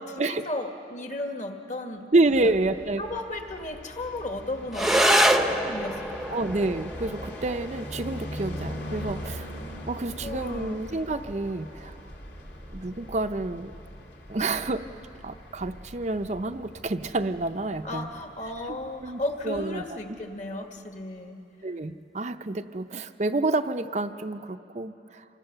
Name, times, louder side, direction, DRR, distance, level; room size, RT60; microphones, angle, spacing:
voice 1, 0.0-2.1 2.4-2.5 3.0-6.5 9.4-9.6 10.2-10.8 17.8-21.4, left 2 dB, 40° left, 4 dB, 1.9 m, -35 dB
voice 2, 2.1-3.0 6.3-9.5 9.9-12.0 12.7-13.7 14.3-14.8 15.2-18.1 19.0-19.8 21.6-25.2, right 2 dB, 40° right, 7 dB, 0.6 m, -28 dB
sound 1, 2.2-20.2, equal, 70° left, 2.9 m, -42 dB
sound 2, 4.7-13.7, right 1 dB, ahead, 0.8 m, -28 dB
27.5 x 24.0 x 6.8 m, 2.7 s
head